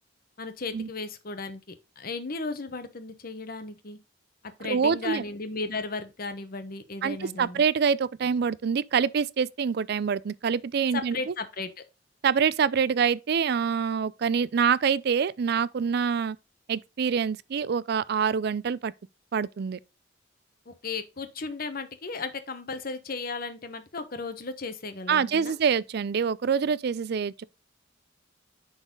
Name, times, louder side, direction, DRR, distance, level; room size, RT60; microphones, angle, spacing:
voice 1, 0.4-4.0 4.6-7.6 10.9-11.7 20.7-25.6, left 3 dB, 50° left, 1.0 m, -35 dB
voice 2, 4.6-5.2 7.0-11.3 12.2-16.4 16.7-18.9 19.3-19.8 25.1-27.4, right 6 dB, 55° right, 0.4 m, -26 dB
10.0 x 4.0 x 3.8 m
head